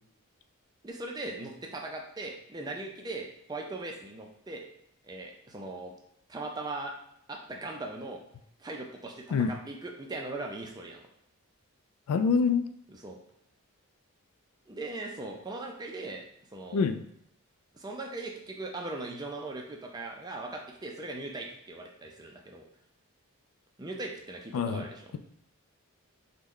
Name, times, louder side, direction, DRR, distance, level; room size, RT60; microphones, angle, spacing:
voice 1, 0.8-4.6 5.0-5.9 6.3-6.9 7.3-8.2 8.6-11.0 12.9-13.2 14.7-16.2 16.5-16.9 17.7-22.6 23.8-25.1, right 2 dB, 20° right, 1 dB, 0.4 m, -39 dB
voice 2, 12.1-12.6 16.7-17.0 24.5-24.8, left 5 dB, 85° left, 10 dB, 0.3 m, -25 dB
3.1 x 2.2 x 3.7 m, 0.74 s
head